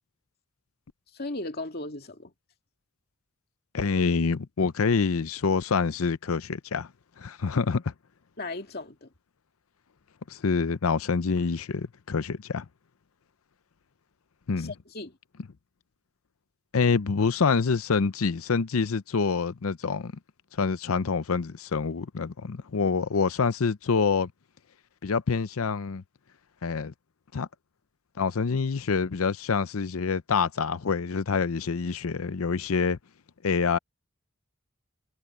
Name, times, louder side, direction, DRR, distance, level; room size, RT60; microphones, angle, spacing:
voice 1, 1.1-2.3 7.6-7.7 8.4-9.1 14.6-15.2, left 2 dB, 45° left, 2.3 m, -36 dB
voice 2, 3.7-6.9 7.2-7.8 10.3-12.6 14.5-14.7 16.7-20.1 20.5-24.3 25.0-26.0 26.6-26.9 27.3-27.5 28.2-33.0 33.4-33.8, left 5 dB, 85° left, 0.6 m, -26 dB
head